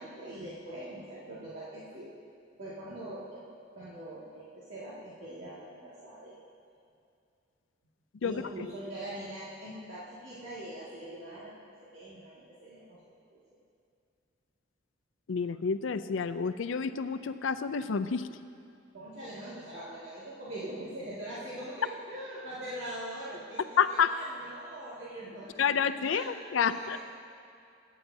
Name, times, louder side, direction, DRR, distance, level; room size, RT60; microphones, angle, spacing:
voice 1, 0.0-2.1 2.6-3.4 3.7-6.4 8.2-13.4 18.9-27.0, right 1 dB, 75° right, -10 dB, 2.1 m, -43 dB
voice 2, 15.3-18.3 23.8-24.1 25.6-27.0, left 6 dB, 75° left, 10 dB, 0.5 m, -29 dB
22.0 x 9.1 x 2.7 m, 2.5 s
head